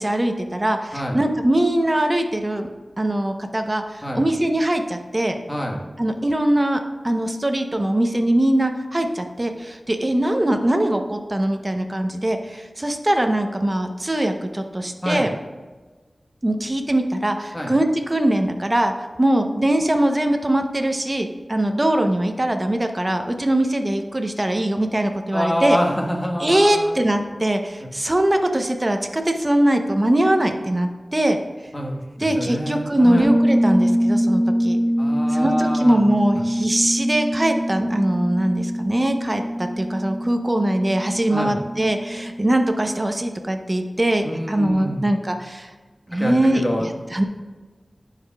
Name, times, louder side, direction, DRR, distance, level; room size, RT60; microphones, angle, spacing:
voice 1, 0.0-2.7 3.0-5.4 6.0-15.3 16.4-18.9 19.2-25.8 26.4-31.4 32.2-34.8 35.3-45.7 46.1-47.2, right 1 dB, 30° right, 5 dB, 0.7 m, -21 dB
voice 2, 5.5-5.8 15.0-15.3 17.5-17.7 25.3-26.9 31.7-32.0 32.3-33.3 35.0-36.0 41.3-41.6 44.2-45.1 46.1-46.9, equal, 20° left, 0 dB, 1.3 m, -26 dB
Bass guitar, 33.2-42.9, equal, 75° right, 1.2 m, -24 dB
11.0 x 4.9 x 2.3 m, 1.3 s
wide cardioid pair, 50°, 0 cm